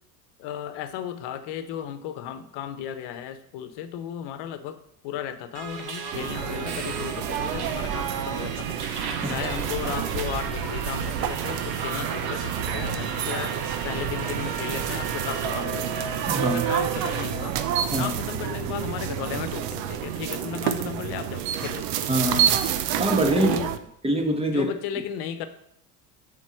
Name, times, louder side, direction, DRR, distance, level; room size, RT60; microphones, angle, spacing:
voice 1, 0.4-4.8 5.0-8.8 9.3-13.6 13.8-16.0 16.4-17.6 18.0-21.9 23.3-23.7 24.5-25.5, left 9 dB, 60° left, 1.1 m, -34 dB
Subway metro underground, 5.5-17.2, right 6 dB, 50° right, 1.4 m, -33 dB
sound 1, 6.1-23.8, right 10 dB, 80° right, 0.8 m, -29 dB
voice 2, 16.3-16.6 17.9-18.1 22.1-22.5 23.0-23.5 24.0-24.7, right 1 dB, 10° right, 1.3 m, -24 dB
7.4 x 4.3 x 6.2 m
supercardioid pair, 95°, 47 cm